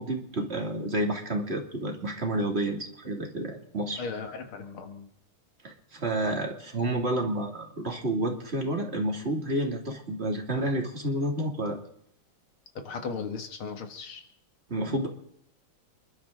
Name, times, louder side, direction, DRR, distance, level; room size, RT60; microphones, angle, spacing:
voice 1, 0.0-4.0 5.6-11.8 14.7-15.1, right 1 dB, 30° right, 1 dB, 2.9 m, -30 dB
voice 2, 4.0-5.1 12.7-14.2, left 5 dB, 85° left, 6 dB, 2.6 m, -37 dB
28.5 x 12.0 x 3.9 m, 0.71 s
omnidirectional pair, 2.3 m